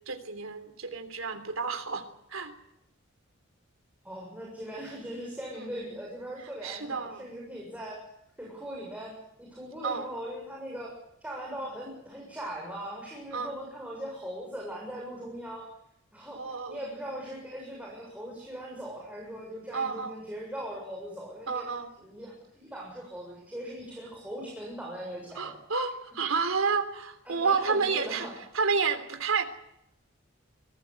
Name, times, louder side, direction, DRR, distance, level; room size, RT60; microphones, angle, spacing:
voice 1, 0.1-2.5 5.6-5.7 6.6-7.3 9.8-10.1 13.3-13.5 16.4-16.8 19.7-20.1 21.5-21.9 25.4-28.3 28.5-29.4, right 5 dB, 85° right, 9 dB, 3.3 m, -30 dB
voice 2, 4.0-8.0 8.4-10.9 11.2-15.7 16.1-21.7 22.0-25.6 27.3-28.3, equal, 5° right, -2 dB, 6.9 m, -40 dB
24.0 x 17.0 x 8.3 m, 0.82 s
head